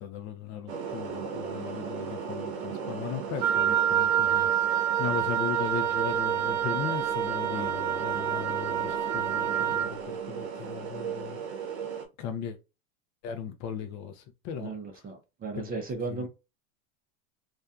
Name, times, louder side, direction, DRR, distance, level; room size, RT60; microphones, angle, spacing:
voice 1, 0.0-11.4 12.2-12.6 13.2-14.7 15.6-15.7 16.1-16.3, left 8 dB, 40° left, 0.5 m, -37 dB
sound 1, 0.7-12.1, right 6 dB, 70° right, 0.9 m, -36 dB
Wind instrument woodwind instrument, 3.4-9.9, right 10 dB, 90° right, 0.5 m, -27 dB
voice 2, 14.6-16.3, right 3 dB, 20° right, 0.6 m, -35 dB
2.6 x 2.3 x 2.3 m
hypercardioid pair, 115°, 43 cm